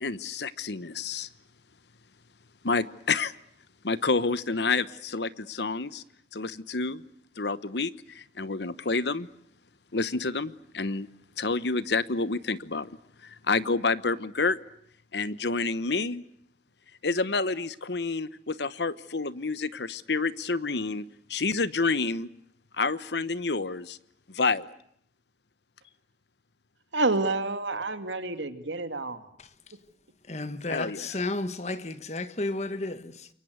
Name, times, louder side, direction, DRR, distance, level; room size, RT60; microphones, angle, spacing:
voice 1, 0.0-1.3 2.6-3.3 3.8-6.0 6.3-7.0 7.4-9.3 9.9-11.1 11.4-12.9 13.2-14.6 15.1-16.2 17.0-21.0 21.3-22.3 22.8-24.0 24.3-24.7 30.7-31.2, left 4 dB, 70° left, 1.1 m, -29 dB
voice 2, 26.9-29.2, right 2 dB, 90° right, 2.3 m, -28 dB
voice 3, 30.3-33.3, left 2 dB, 35° left, 1.4 m, -32 dB
28.0 x 23.5 x 8.1 m
head